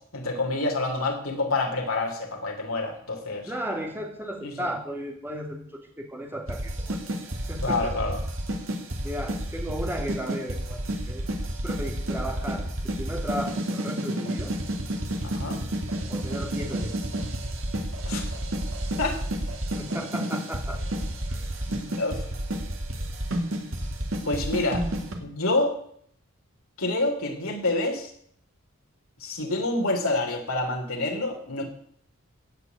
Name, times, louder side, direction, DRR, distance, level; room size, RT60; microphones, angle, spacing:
voice 1, 0.1-3.5 4.4-4.7 7.6-8.2 15.2-15.6 18.0-18.3 19.0-19.2 21.7-22.2 24.2-24.9 25.2-25.8 26.8-28.1 29.2-31.6, left 2 dB, 70° left, 2 dB, 3.1 m, -27 dB
voice 2, 3.4-7.0 7.5-8.0 9.0-11.3 11.6-12.7 13.0-14.5 16.1-17.0 19.7-20.8 21.3-21.5, equal, 10° right, 1 dB, 2.8 m, -35 dB
sound 1, 6.5-25.1, right 1 dB, 65° right, 2.6 m, -30 dB
16.5 x 6.1 x 9.4 m, 0.65 s
head